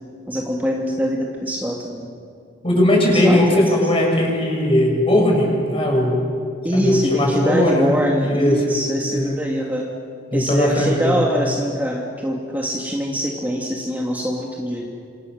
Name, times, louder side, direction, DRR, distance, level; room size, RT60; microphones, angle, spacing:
voice 1, 0.3-2.1 3.1-3.6 6.6-9.9 10.3-14.9, equal, 10° right, -1 dB, 2.1 m, -23 dB
voice 2, 2.6-6.2 6.7-8.8 9.1-9.3 10.3-11.2, left 1 dB, 30° left, 0 dB, 7.2 m, -18 dB
27.5 x 26.5 x 6.6 m, 2.4 s
head